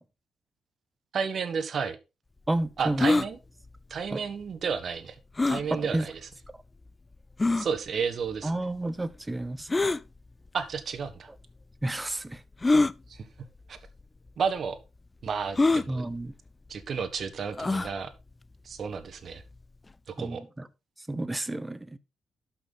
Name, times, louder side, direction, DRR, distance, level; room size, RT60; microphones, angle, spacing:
voice 1, 1.1-2.0 2.8-3.4 3.9-5.2 5.5-6.2 7.6-8.5 10.5-11.3 13.1-13.3 13.7-13.8 14.4-14.8 15.2-16.0 16.7-18.1 18.6-19.4 20.1-20.4, right 6 dB, 50° right, 1.5 m, -32 dB
voice 2, 2.5-3.1 4.1-4.2 5.7-6.1 6.5-6.6 8.4-9.7 11.8-12.4 15.9-16.3 20.2-20.7 21.0-22.0, right 1 dB, 15° right, 0.8 m, -31 dB
sound 1, 3.0-3.3 5.4-5.7 6.4-6.5 7.4-7.7 9.7-10.0 11.1-11.2 12.6-12.9 13.9-14.0 14.3-14.4 15.6-15.9 17.6-17.9, left 3 dB, 20° left, 0.4 m, -23 dB
12.0 x 5.9 x 4.0 m
cardioid pair, 90°, 0 cm